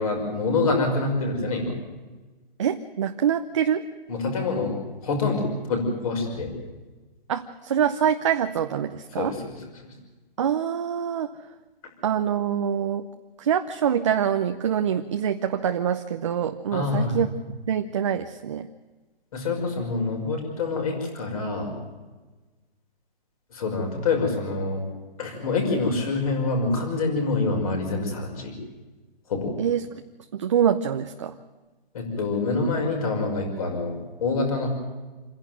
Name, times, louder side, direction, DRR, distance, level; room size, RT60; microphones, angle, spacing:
voice 1, 0.0-1.7 4.1-4.8 5.0-6.5 9.2-9.5 9.8-9.9 16.7-17.2 19.3-21.7 23.5-24.8 25.2-28.5 29.3-29.5 31.9-34.7, left 3 dB, 35° left, 2 dB, 5.7 m, -26 dB
voice 2, 2.6-3.9 7.3-9.4 10.4-11.3 12.0-13.1 13.4-17.3 17.7-18.7 29.6-29.9 30.3-31.4, right 8 dB, 30° right, 7 dB, 0.7 m, -25 dB
27.5 x 11.0 x 9.2 m, 1.3 s
hypercardioid pair, 165°, 30 cm